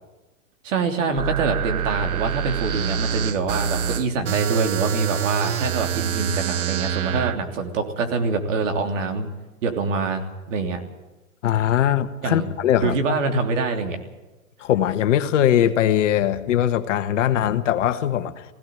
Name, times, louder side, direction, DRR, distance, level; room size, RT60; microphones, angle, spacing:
voice 1, 0.6-9.3 9.6-10.8 12.2-12.5 12.8-14.0, right 4 dB, 60° right, 5 dB, 3.4 m, -25 dB
sound 1, 1.2-7.4, right 9 dB, 85° right, 1.0 m, -26 dB
voice 2, 11.4-12.9 14.6-18.4, left 11 dB, 60° left, 10 dB, 1.6 m, -21 dB
17.0 x 17.0 x 9.3 m, 1.1 s
hypercardioid pair, 125°, 42 cm